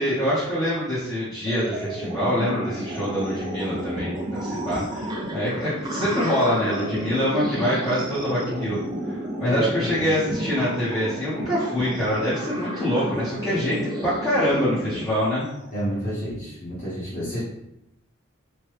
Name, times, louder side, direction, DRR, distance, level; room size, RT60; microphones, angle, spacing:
voice 1, 0.0-8.8 9.1-15.5, equal, 15° left, -12 dB, 0.7 m, -25 dB
sound 1, 1.5-15.7, right 1 dB, 20° right, 0.3 m, -39 dB
sound 2, 2.0-15.0, right 1 dB, 85° right, 0.9 m, -32 dB
voice 2, 9.4-10.1 15.7-17.4, right 1 dB, 35° left, -9 dB, 0.9 m, -29 dB
3.1 x 2.2 x 3.0 m, 0.84 s
head